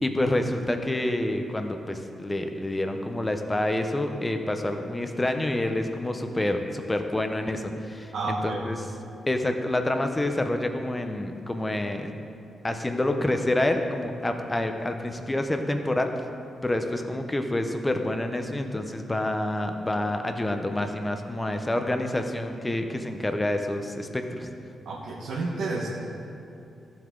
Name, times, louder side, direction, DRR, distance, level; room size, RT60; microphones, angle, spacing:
voice 1, 0.0-8.8 9.3-12.1 12.6-16.1 16.6-24.5, left 1 dB, 10° left, 6 dB, 0.7 m, -28 dB
voice 2, 8.1-8.7 24.8-25.9, right 3 dB, 90° right, -5 dB, 1.3 m, -30 dB
14.5 x 7.9 x 3.7 m, 2.8 s
wide cardioid pair, 175°, 0 cm